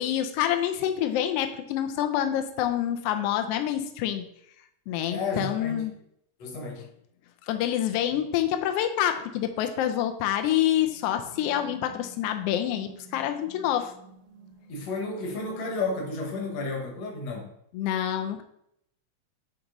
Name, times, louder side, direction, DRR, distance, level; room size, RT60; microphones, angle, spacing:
voice 1, 0.0-4.3 4.9-5.9 7.5-13.9 17.7-18.4, left 11 dB, 90° left, 7 dB, 1.3 m, -27 dB
voice 2, 5.1-5.9 6.4-6.9 14.7-17.5, left 3 dB, 65° left, 1 dB, 2.2 m, -32 dB
sound 1, 10.9-16.6, right 3 dB, 75° right, 1.9 m, -51 dB
8.9 x 3.0 x 3.8 m, 0.74 s
omnidirectional pair, 3.3 m